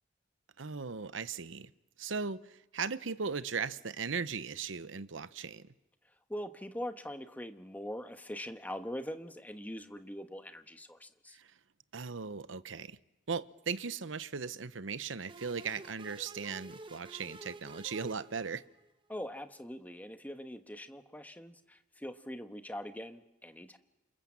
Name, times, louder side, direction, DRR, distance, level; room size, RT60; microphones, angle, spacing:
voice 1, 0.6-1.7 2.0-5.7 11.3-11.5 11.9-13.0 13.3-18.6, right 5 dB, 85° right, 0.9 m, -38 dB
voice 2, 6.3-11.4 19.1-23.8, equal, 10° left, 1.2 m, -42 dB
sound 1, 15.3-18.9, right 2 dB, 25° right, 1.0 m, -50 dB
29.5 x 27.0 x 7.4 m
head